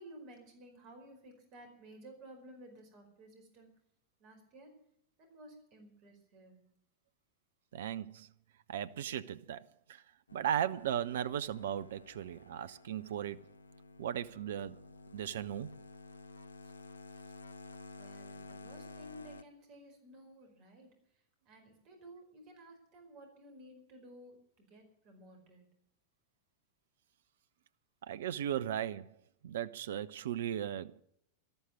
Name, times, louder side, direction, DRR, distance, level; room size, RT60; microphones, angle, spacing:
voice 1, 0.0-3.7 4.2-4.8 5.2-6.6 17.9-25.7, right 1 dB, 40° right, 4.8 m, -55 dB
voice 2, 7.7-8.3 8.7-10.0 10.3-13.5 14.0-14.8 15.1-15.7 28.0-29.1 29.4-31.0, right 10 dB, 60° right, 0.6 m, -37 dB
sound 1, 10.3-19.4, left 3 dB, 75° left, 0.6 m, -52 dB
13.0 x 12.5 x 7.9 m
figure-of-eight pair, 90°, 0 cm